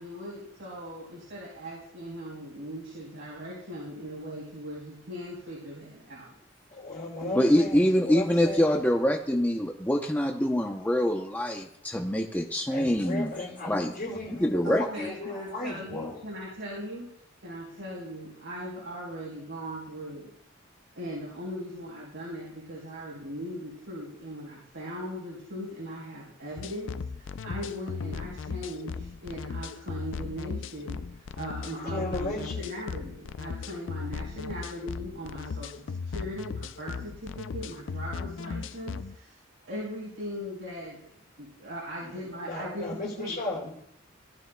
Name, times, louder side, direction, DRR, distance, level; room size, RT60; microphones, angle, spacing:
voice 1, 0.0-6.3 7.2-7.5 14.6-17.1 17.4-20.3 20.9-39.4 39.6-41.0 41.4-42.9 43.2-43.4, equal, 80° right, -6 dB, 3.8 m, -39 dB
voice 2, 6.7-9.0 12.7-16.2 31.7-32.7 42.0-42.1 42.4-43.7, left 2 dB, 45° left, -3 dB, 4.8 m, -36 dB
voice 3, 7.3-13.3 13.7-13.9 14.4-15.1, equal, 10° left, 2 dB, 0.7 m, -25 dB
sound 1, 26.6-39.2, left 5 dB, 65° left, 0.4 m, -37 dB
17.5 x 12.0 x 2.2 m, 0.72 s
head